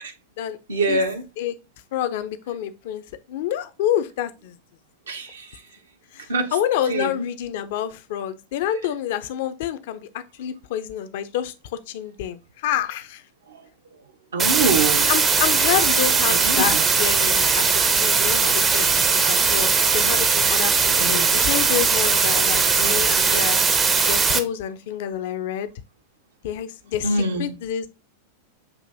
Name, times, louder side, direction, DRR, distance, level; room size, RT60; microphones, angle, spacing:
voice 1, 0.7-1.2 5.1-5.6 6.3-6.5 6.9-7.2 13.5-13.6 14.3-15.1 16.3-16.8 21.0-21.4 27.0-27.5, right 3 dB, 70° right, 0.7 m, -25 dB
voice 2, 1.9-3.0 3.3-4.6 6.1-13.2 15.1-23.6 24.0-25.7 26.4-27.1 27.4-27.9, left 10 dB, 50° left, 0.5 m, -28 dB
sound 1, 14.4-24.4, right 5 dB, 20° right, 0.5 m, -19 dB
7.6 x 2.6 x 2.6 m
figure-of-eight pair, 90°, 0 cm